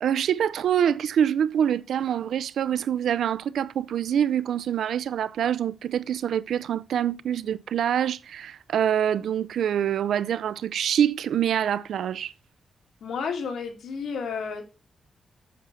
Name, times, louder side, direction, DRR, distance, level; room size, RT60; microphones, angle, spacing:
voice 1, 0.0-12.3, right 9 dB, 90° right, 0.5 m, -25 dB
voice 2, 13.0-14.6, left 5 dB, 90° left, 2.7 m, -31 dB
7.7 x 7.1 x 6.5 m
cardioid pair, 110°, 0 cm